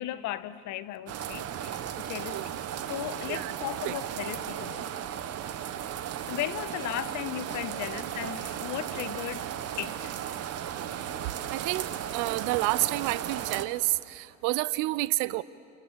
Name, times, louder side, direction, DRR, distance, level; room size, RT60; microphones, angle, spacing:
voice 1, 0.0-2.4 2.9-4.9 6.3-9.5 9.8-10.1, left 13 dB, 50° left, 1.3 m, -36 dB
sound 1, 1.1-13.7, right 10 dB, 40° right, 1.6 m, -35 dB
voice 2, 11.5-15.4, right 20 dB, 55° right, 0.9 m, -29 dB
29.5 x 28.0 x 6.5 m
hypercardioid pair, 90°, 38 cm